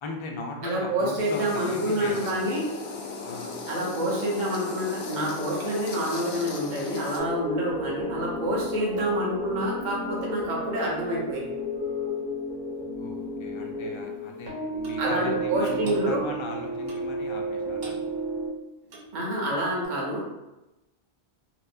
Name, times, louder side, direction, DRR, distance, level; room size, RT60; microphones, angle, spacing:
voice 1, 0.0-2.5 3.2-3.5 7.8-7.9 13.0-18.0, left 3 dB, 45° left, 1 dB, 0.4 m, -38 dB
voice 2, 0.6-2.7 3.7-11.6 15.0-16.3 19.1-20.2, right 1 dB, 50° right, -3 dB, 0.9 m, -28 dB
sound 1, 1.2-7.2, left 3 dB, 80° left, 0.8 m, -36 dB
sound 2, 7.2-18.5, right 1 dB, 30° right, 0.9 m, -32 dB
Clock, 14.8-15.0 15.8-16.1 16.9-17.2 17.8-18.1 18.8-19.1 19.8-19.9, right 2 dB, 75° right, 0.9 m, -44 dB
4.2 x 2.0 x 2.6 m, 0.98 s
omnidirectional pair, 1.0 m